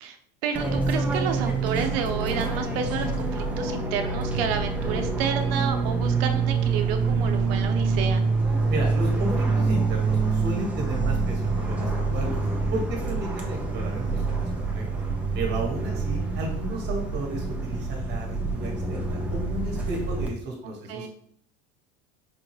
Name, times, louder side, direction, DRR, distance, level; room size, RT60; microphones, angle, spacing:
voice 1, 0.4-8.2 20.9-21.1, right 7 dB, 80° right, 6 dB, 0.7 m, -30 dB
Fixed-wing aircraft airplane, 0.5-20.3, right 3 dB, 5° right, 0.5 m, -26 dB
voice 2, 8.7-12.4 12.7-14.8 15.3-21.1, right 2 dB, 35° right, 0 dB, 1.3 m, -33 dB
5.0 x 2.2 x 3.1 m, 0.64 s
supercardioid pair, 135°, 29 cm